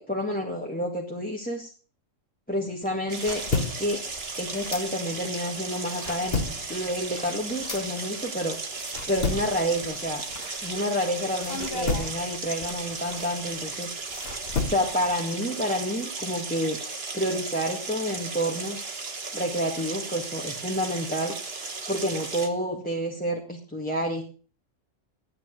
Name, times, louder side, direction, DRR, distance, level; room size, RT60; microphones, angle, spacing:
voice 1, 0.0-1.7 2.5-4.0 4.4-6.4 6.7-8.6 9.1-10.2 10.6-13.9 14.7-16.8 17.1-18.9 19.3-21.3 21.9-24.3, equal, 5° left, -1 dB, 1.9 m, -29 dB
sound 1, 2.8-5.4 5.7-11.0 11.4-15.1, left 4 dB, 50° left, 1.6 m, -33 dB
sound 2, 3.1-22.5, right 4 dB, 50° right, 1.8 m, -35 dB
11.0 x 9.4 x 6.6 m, 0.37 s
omnidirectional pair, 1.3 m